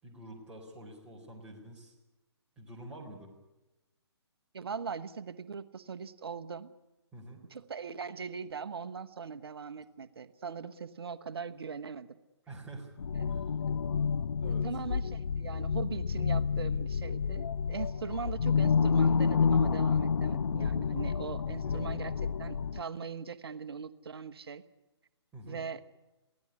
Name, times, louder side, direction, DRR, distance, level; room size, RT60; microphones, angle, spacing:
voice 1, 0.0-1.9 2.6-3.3 7.1-7.4 12.5-12.9 13.3-13.5 14.4-14.7 21.6-22.0 25.3-25.6, right 1 dB, 5° right, -4 dB, 4.1 m, -47 dB
voice 2, 4.5-6.7 7.5-12.2 13.2-13.3 14.5-22.1 22.4-24.6 25.5-25.8, right 6 dB, 60° right, 11 dB, 1.3 m, -40 dB
sound 1, 13.0-22.8, left 6 dB, 60° left, 0.7 m, -29 dB
23.0 x 16.0 x 9.9 m, 1.1 s
figure-of-eight pair, 135°, 15 cm